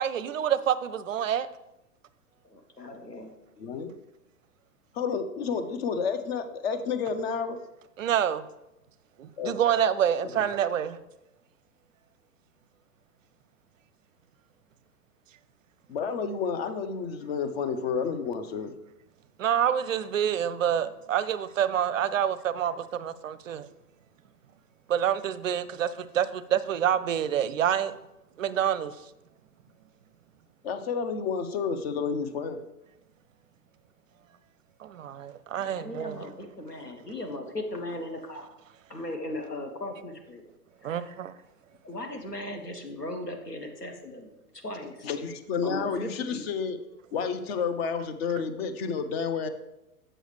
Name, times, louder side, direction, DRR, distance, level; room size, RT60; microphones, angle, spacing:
voice 1, 0.0-1.5 8.0-8.4 9.2-11.0 19.4-23.7 24.9-28.0 28.4-28.9 34.8-36.2 40.8-41.3, right 9 dB, 55° right, 0.5 m, -27 dB
voice 2, 2.5-3.4 35.6-38.5 38.9-40.4 40.8-41.0 41.8-44.3 44.6-45.1 45.6-46.4, left 1 dB, 90° left, 1.2 m, -37 dB
voice 3, 3.6-3.9 4.9-7.6 9.4-9.6 15.9-18.7 30.6-32.6 45.0-46.8 47.1-49.5, left 6 dB, 40° left, 0.7 m, -30 dB
7.6 x 6.3 x 3.3 m
figure-of-eight pair, 105°, 47 cm